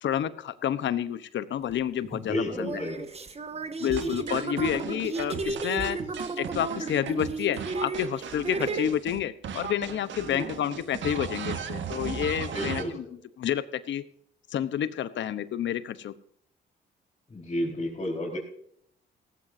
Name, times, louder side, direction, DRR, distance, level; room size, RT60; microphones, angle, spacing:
voice 1, 0.0-2.8 3.8-6.0 6.4-14.1 14.5-16.1, left 10 dB, 70° left, 14 dB, 1.0 m, -29 dB
sound 1, 1.7-1.8 2.5-8.9, right 3 dB, 30° right, 1.6 m, -34 dB
voice 2, 2.1-3.1 4.0-4.1 10.3-10.5 12.5-12.9 17.3-18.4, left 1 dB, 30° left, -6 dB, 4.9 m, -31 dB
sound 2, 3.8-9.2 9.4-12.8, right 7 dB, 70° right, 1.8 m, -36 dB
17.0 x 16.0 x 2.8 m, 0.66 s
cardioid pair, 90°, 20 cm